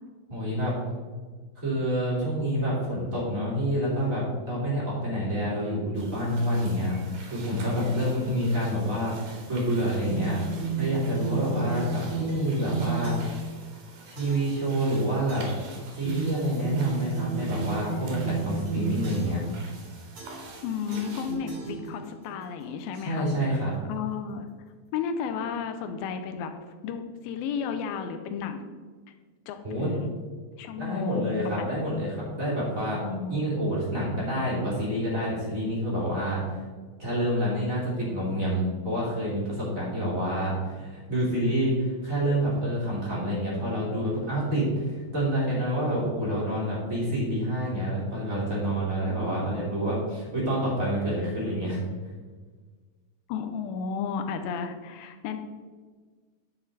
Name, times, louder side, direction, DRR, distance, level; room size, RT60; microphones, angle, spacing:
voice 1, 0.3-0.7 1.6-13.4 14.1-15.4 15.9-19.4 23.0-23.7 29.6-29.9 30.8-33.0 33.3-36.4 37.0-51.8, equal, 25° right, -6 dB, 2.9 m, -28 dB
sound 1, 6.0-21.4, right 3 dB, 65° right, 3.1 m, -48 dB
sound 2, 10.0-13.5 14.2-14.6 15.3-15.7 16.0-19.5 20.2-20.6 20.9-22.2, right 4 dB, 40° right, 3.1 m, -32 dB
voice 2, 20.6-24.5 24.9-26.5 26.8-28.7 29.5-30.2 30.6-31.8 33.0-33.4 49.7-50.1 53.3-55.4, left 6 dB, 85° left, 7 dB, 2.5 m, -33 dB
10.5 x 7.2 x 4.1 m, 1.5 s
omnidirectional pair, 4.1 m